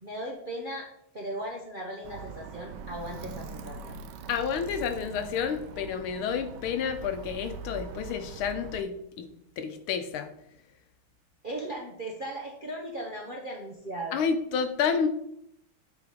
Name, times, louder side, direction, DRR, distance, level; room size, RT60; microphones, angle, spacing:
voice 1, 0.0-0.9 1.1-3.9 11.4-14.2, right 1 dB, 45° right, -1 dB, 0.6 m, -37 dB
Alarm, 2.0-8.8, right 5 dB, 75° right, 1.0 m, -42 dB
voice 2, 4.3-9.3 9.6-10.3 14.1-15.1, left 6 dB, 80° left, 9 dB, 1.6 m, -30 dB
8.5 x 3.9 x 5.1 m, 0.74 s
omnidirectional pair, 2.3 m